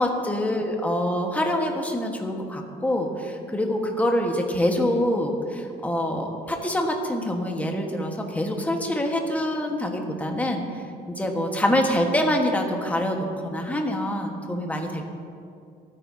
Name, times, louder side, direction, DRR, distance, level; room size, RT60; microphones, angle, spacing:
voice 1, 0.0-15.0, left 1 dB, 10° left, 2 dB, 1.4 m, -25 dB
24.0 x 9.7 x 2.8 m, 2.4 s
cardioid pair, 110°, 17 cm